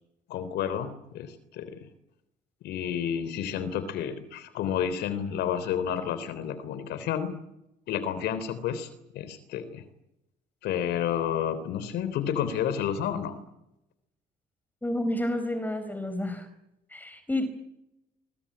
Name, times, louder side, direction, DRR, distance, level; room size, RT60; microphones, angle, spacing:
voice 1, 0.3-1.9 2.6-7.3 7.9-9.8 10.6-13.4, left 9 dB, 80° left, 14 dB, 3.5 m, -30 dB
voice 2, 14.8-16.5 16.9-17.5, left 1 dB, 10° left, 11 dB, 4.4 m, -30 dB
25.5 x 23.5 x 8.7 m, 0.87 s
cardioid pair, 110°, 17 cm